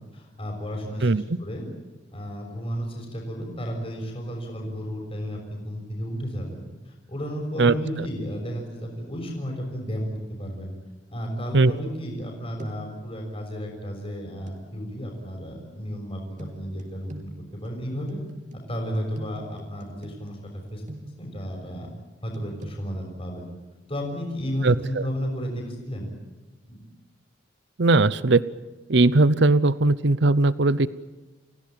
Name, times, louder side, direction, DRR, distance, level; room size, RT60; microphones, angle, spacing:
voice 1, 0.1-1.7 2.1-10.1 10.4-10.7 11.1-18.2 18.5-20.4 20.7-20.8 21.2-21.9 22.2-23.5 23.9-26.1 26.7-26.8, equal, 30° left, 1 dB, 6.4 m, -33 dB
sound 1, 11.8-12.3 12.6-13.0 14.5-14.6 16.4-21.4 22.3-22.8, right 1 dB, 45° right, 3.4 m, -44 dB
voice 2, 24.6-25.0 27.8-28.4 28.9-30.9, right 2 dB, 65° right, 17 dB, 0.8 m, -19 dB
29.5 x 17.0 x 8.8 m, 1.1 s
head